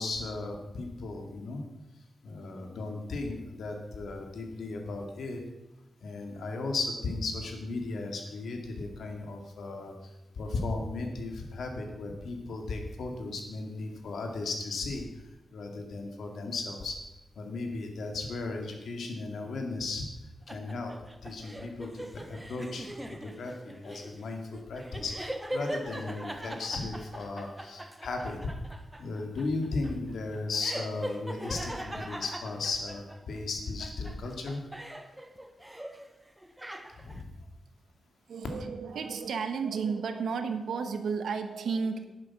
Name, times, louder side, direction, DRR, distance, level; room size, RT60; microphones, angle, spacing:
voice 1, 0.0-1.6 2.2-5.4 6.0-9.9 10.4-15.0 15.5-17.0 17.4-20.1 20.5-20.9 21.2-28.5 29.0-34.6 37.0-37.3, left 3 dB, 70° left, 3 dB, 2.3 m, -36 dB
sound 1, 20.5-33.4 33.8-36.1 36.4-37.2, right 1 dB, 10° right, 1.0 m, -41 dB
voice 2, 38.3-42.1, right 5 dB, 75° right, 8 dB, 1.2 m, -32 dB
11.0 x 10.5 x 6.1 m, 1.0 s
wide cardioid pair, 160°, 0 cm